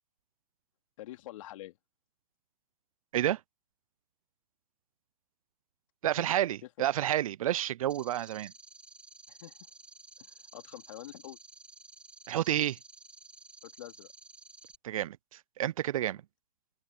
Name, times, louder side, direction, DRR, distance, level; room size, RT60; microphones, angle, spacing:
voice 1, 1.0-1.8 6.0-6.3 6.6-6.9 9.3-9.6 10.2-11.4 13.6-14.1, left 15 dB, 50° left, 3.2 m, -46 dB
voice 2, 6.0-8.5 12.3-12.8 14.8-15.2 15.6-16.2, right 12 dB, 55° right, 0.6 m, -29 dB
sound 1, 7.9-14.8, right 3 dB, 5° right, 2.9 m, -53 dB
open air
hypercardioid pair, 125°, 21 cm